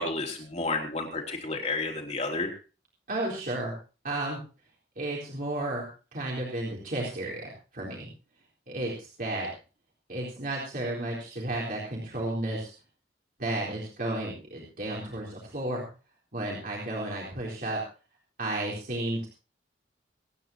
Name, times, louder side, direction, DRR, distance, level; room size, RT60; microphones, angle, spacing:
voice 1, 0.0-2.5, left 3 dB, 40° left, 1 dB, 3.6 m, -31 dB
voice 2, 3.1-3.7 4.0-4.4 5.0-5.9 6.1-8.1 8.7-9.5 10.1-12.7 13.4-15.8 16.3-17.8 18.4-19.3, right 1 dB, 55° right, -3 dB, 3.9 m, -32 dB
26.0 x 9.7 x 2.9 m, 0.35 s
head